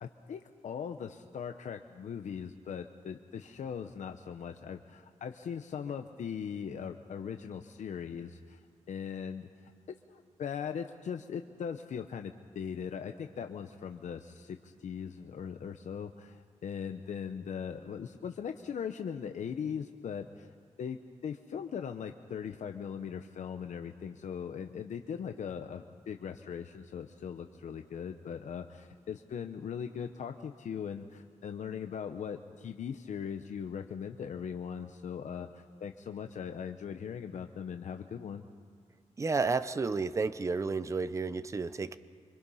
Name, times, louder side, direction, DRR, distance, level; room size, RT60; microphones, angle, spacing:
voice 1, 0.0-8.6 8.9-9.7 10.1-20.5 20.8-38.4, left 7 dB, 80° left, 6 dB, 0.8 m, -40 dB
voice 2, 39.2-42.0, right 4 dB, 25° right, 13 dB, 0.6 m, -31 dB
26.0 x 25.5 x 5.6 m, 2.1 s
wide cardioid pair, 165°, 12 cm